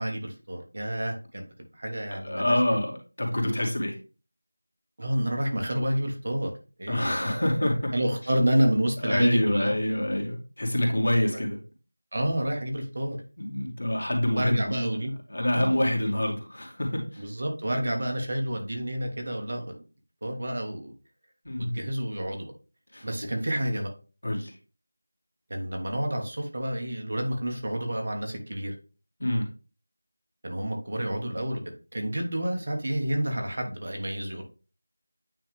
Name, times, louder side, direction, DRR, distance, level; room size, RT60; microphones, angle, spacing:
voice 1, 0.0-1.5 1.7-2.6 5.0-6.5 6.8-7.5 7.9-9.7 12.1-13.2 14.4-15.1 15.5-16.1 17.2-19.7 20.2-20.9 21.6-22.5 23.0-23.9 25.5-28.7 30.4-31.6 31.9-34.4, right 1 dB, 40° right, 2 dB, 1.2 m, -29 dB
voice 2, 2.1-4.0 6.9-7.9 9.0-11.6 13.4-14.8 15.3-17.3 21.4-21.8 22.9-23.1 24.2-24.6 29.2-29.5, left 1 dB, 60° left, 0 dB, 2.4 m, -26 dB
9.0 x 3.2 x 3.3 m, 0.33 s
figure-of-eight pair, 175°, 0 cm